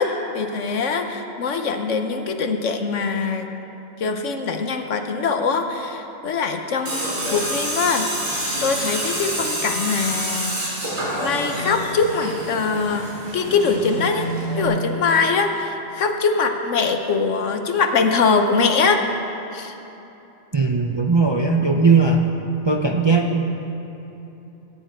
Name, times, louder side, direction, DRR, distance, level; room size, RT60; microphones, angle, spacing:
voice 1, 0.0-3.5 4.0-8.2 8.6-10.6 11.2-14.3 14.6-19.0 19.5-19.7, left 4 dB, 65° left, 6 dB, 1.2 m, -22 dB
Tools, 6.9-14.6, right 1 dB, 75° right, 4.4 m, -27 dB
voice 2, 20.5-22.3 22.6-23.4, right 4 dB, 30° right, 1 dB, 0.5 m, -18 dB
19.5 x 10.0 x 4.5 m, 3.0 s
omnidirectional pair, 1.4 m